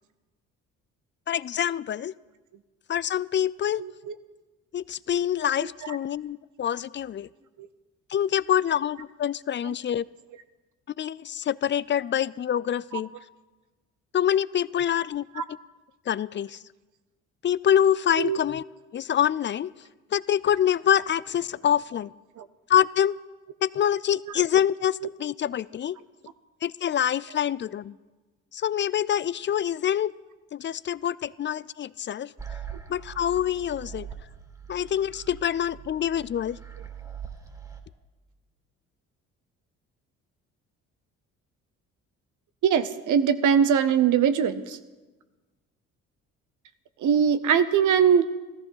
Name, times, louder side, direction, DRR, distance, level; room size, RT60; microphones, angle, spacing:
voice 1, 1.3-2.1 2.9-3.8 4.7-7.3 8.1-10.1 11.0-13.1 14.1-15.2 16.1-16.6 17.4-18.6 18.9-19.7 20.1-22.1 22.7-23.2 23.6-26.0 26.6-27.9 28.5-30.1 30.5-32.3 32.9-34.1 34.7-36.6, left 9 dB, 35° left, 20 dB, 0.4 m, -25 dB
voice 2, 3.8-4.1 12.9-13.0 15.4-15.5 18.2-18.4 22.4-22.5 42.6-44.8 47.0-48.2, right 8 dB, 65° right, 12 dB, 0.9 m, -21 dB
sound 1, 32.4-37.8, right 8 dB, 10° right, 2.2 m, -42 dB
14.0 x 14.0 x 5.6 m, 1.2 s
supercardioid pair, 65°, 33 cm